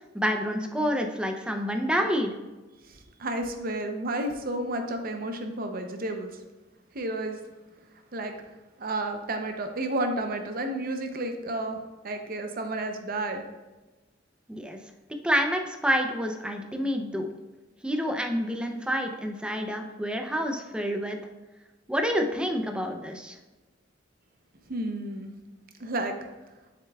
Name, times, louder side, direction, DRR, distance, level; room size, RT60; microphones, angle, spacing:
voice 1, 0.1-2.3 14.5-14.8 15.2-17.3 17.8-21.2 21.9-23.4, equal, 5° right, 4 dB, 0.5 m, -28 dB
voice 2, 2.9-6.4 6.9-7.4 8.1-8.3 8.8-13.4 24.7-25.3 25.8-26.1, right 1 dB, 50° right, 5 dB, 0.7 m, -31 dB
7.4 x 6.6 x 2.3 m, 1.2 s
head